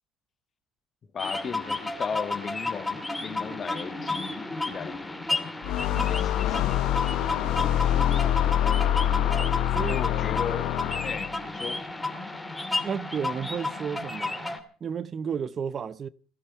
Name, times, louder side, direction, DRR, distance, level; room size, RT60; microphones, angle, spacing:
voice 1, 1.1-5.7 6.1-6.8 7.8-8.0 9.9-10.7 11.0-11.9, left 6 dB, 40° left, 1.5 m, -37 dB
sound 1, 1.2-14.6, left 2 dB, 10° left, 2.3 m, -32 dB
Laughter, 5.1-8.8, equal, 70° right, 4.7 m, -55 dB
sound 2, 5.6-11.3, left 12 dB, 65° left, 0.7 m, -25 dB
voice 2, 5.9-6.2 9.7-10.0 12.8-14.5 14.8-16.1, right 7 dB, 40° right, 0.6 m, -33 dB
16.5 x 12.0 x 5.6 m
hypercardioid pair, 65°, 0 cm